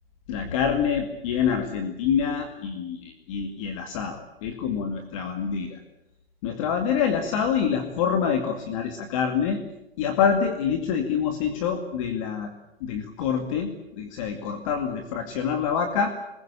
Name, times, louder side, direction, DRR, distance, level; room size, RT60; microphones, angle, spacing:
voice 1, 0.3-5.8 6.4-9.6 10.0-12.5 12.8-16.2, left 7 dB, 35° left, 6 dB, 2.3 m, -26 dB
25.0 x 21.0 x 8.4 m, 0.89 s
hypercardioid pair, 175°, 30 cm